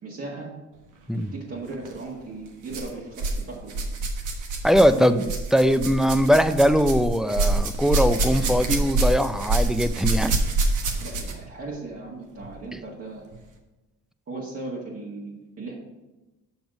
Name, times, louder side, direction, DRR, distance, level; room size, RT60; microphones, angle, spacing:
voice 1, 0.0-0.5 1.1-3.8 4.8-5.2 8.3-8.7 11.0-13.3 14.3-15.8, right 3 dB, 50° right, -5 dB, 1.8 m, -37 dB
sound 1, 1.7-1.9 2.7-3.4 3.7-11.5 12.4-12.5 13.3-13.4, right 3 dB, 80° right, 1.3 m, -26 dB
voice 2, 4.6-5.3 5.5-10.4 12.7-12.8, equal, ahead, 10 dB, 0.4 m, -21 dB
7.2 x 5.9 x 4.9 m, 1.1 s
cardioid pair, 90°, 30 cm